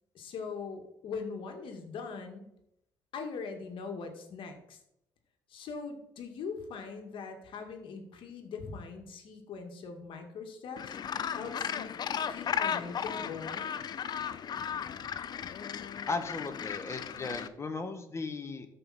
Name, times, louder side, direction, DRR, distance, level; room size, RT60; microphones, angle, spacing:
voice 1, 0.1-2.5 3.1-4.8 5.5-11.0 11.3-11.9 12.3-13.8, left 5 dB, 65° left, 4 dB, 2.1 m, -41 dB
Gull seagull, 10.8-17.5, left 8 dB, 50° left, 0.7 m, -35 dB
voice 2, 16.1-18.7, left 3 dB, 30° left, 7 dB, 1.6 m, -36 dB
13.0 x 5.5 x 4.4 m, 0.79 s
supercardioid pair, 85°, 9 cm